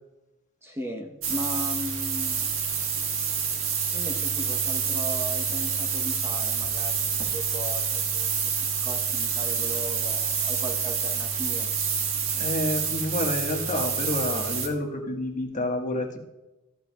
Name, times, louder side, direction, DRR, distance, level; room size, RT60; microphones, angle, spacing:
voice 1, 0.6-2.6 3.9-11.7, equal, 10° right, 2 dB, 0.9 m, -37 dB
sound 1, 1.2-14.7, right 6 dB, 65° right, 1.5 m, -27 dB
voice 2, 12.3-16.2, left 1 dB, 35° left, 2 dB, 1.4 m, -29 dB
14.5 x 8.7 x 2.3 m, 1.0 s
head